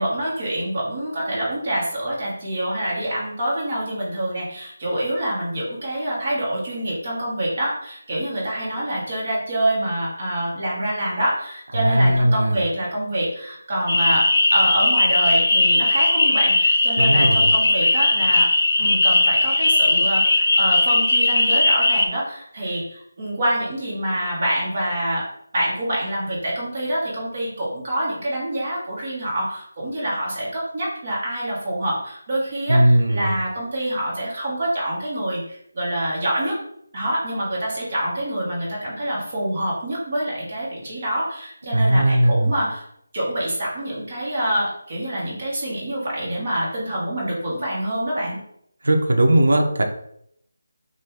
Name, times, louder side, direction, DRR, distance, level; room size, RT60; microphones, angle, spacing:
voice 1, 0.0-18.5 18.8-25.2 25.5-36.6 36.9-42.8 43.1-48.4, right 1 dB, 30° right, -6 dB, 1.4 m, -26 dB
voice 2, 11.7-12.6 17.0-17.5 32.7-33.4 41.7-42.5 48.8-49.8, right 1 dB, 70° right, 2 dB, 0.7 m, -18 dB
sound 1, 13.9-22.1, left 2 dB, 55° left, 0.6 m, -18 dB
2.9 x 2.6 x 3.5 m, 0.72 s
figure-of-eight pair, 175°, 0 cm